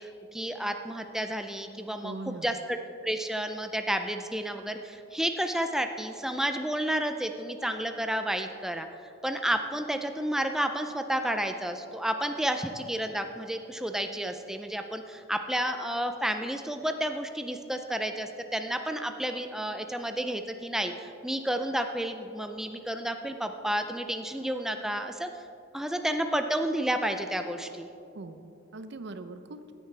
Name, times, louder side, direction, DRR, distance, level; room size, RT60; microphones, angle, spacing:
voice 1, 0.0-2.8 3.0-8.9 9.2-25.3 25.7-27.9, right 1 dB, 5° right, 6 dB, 0.4 m, -31 dB
voice 2, 2.0-2.6 28.1-29.7, right 2 dB, 60° right, 10 dB, 0.6 m, -41 dB
15.5 x 9.4 x 3.3 m, 2.7 s
head